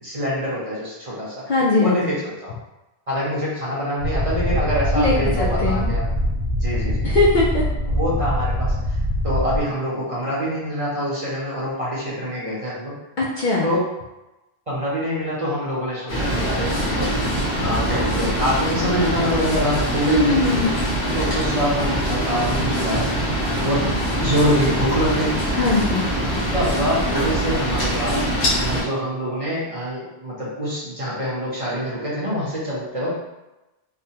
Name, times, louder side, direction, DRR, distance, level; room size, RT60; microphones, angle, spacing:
voice 1, 0.0-1.5 1.8-2.5 3.1-6.1 6.6-7.0 7.9-8.7 9.2-12.9 13.6-13.8 14.7-17.2 17.6-20.4 21.2-23.2 23.6-25.3 26.5-28.2 28.7-33.2, equal, 35° right, -7 dB, 0.8 m, -25 dB
voice 2, 1.5-2.1 4.9-5.8 7.0-7.7 13.2-13.7 20.1-20.8 25.5-26.0, left 2 dB, 60° left, -4 dB, 0.6 m, -20 dB
sound 1, 4.0-9.6, equal, 85° right, 1.0 m, -23 dB
sound 2, 16.1-28.8, equal, 80° left, 1.4 m, -23 dB
3.3 x 2.1 x 2.7 m, 1.0 s
omnidirectional pair, 1.1 m